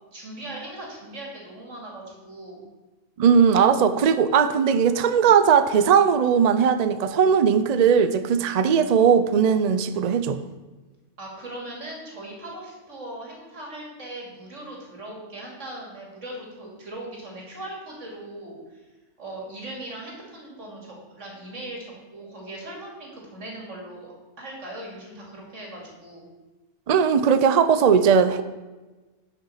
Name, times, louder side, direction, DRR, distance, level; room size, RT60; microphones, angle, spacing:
voice 1, 0.1-2.6 11.2-18.9 19.2-26.3, right 1 dB, 75° right, -2 dB, 2.9 m, -39 dB
voice 2, 3.2-10.4 26.9-28.4, right 7 dB, 55° right, 11 dB, 0.4 m, -19 dB
10.5 x 5.9 x 5.7 m, 1.2 s
omnidirectional pair, 1.3 m